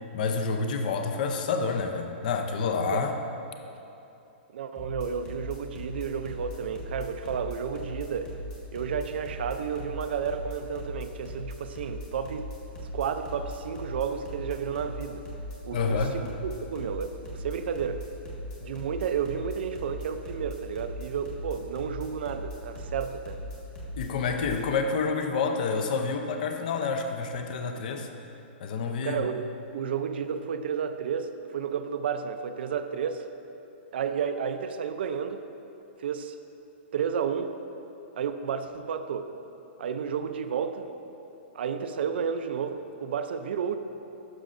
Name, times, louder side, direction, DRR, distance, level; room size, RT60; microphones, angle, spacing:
voice 1, 0.1-3.2 15.7-16.2 24.0-28.1 28.6-29.3, left 4 dB, 45° left, 5 dB, 0.5 m, -28 dB
voice 2, 4.5-8.3 8.7-12.5 12.9-15.3 15.6-18.0 18.6-23.4 29.0-33.3 33.9-35.4 36.0-36.4 36.9-37.5 38.2-39.3 39.8-40.9 41.5-43.8, right 7 dB, 65° right, 8 dB, 0.4 m, -32 dB
sound 1, 4.8-24.6, equal, 20° left, 1.4 m, -39 dB
11.0 x 6.4 x 2.5 m, 2.9 s
hypercardioid pair, 170°, 6 cm